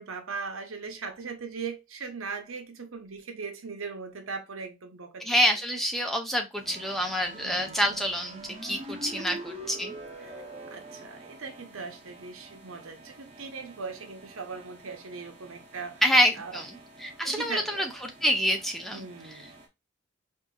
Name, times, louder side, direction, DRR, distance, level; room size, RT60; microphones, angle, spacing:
voice 1, 0.0-5.4 7.4-7.8 8.9-9.4 10.2-10.3 10.7-16.0 16.4-16.6 17.2-17.9 18.9-19.5, right 4 dB, 90° right, 0.8 m, -39 dB
voice 2, 5.2-9.9 16.0-16.7 17.0-19.1, equal, ahead, 0.4 m, -27 dB
sound 1, 6.6-19.7, right 1 dB, 30° right, 0.7 m, -46 dB
3.8 x 2.7 x 2.3 m
head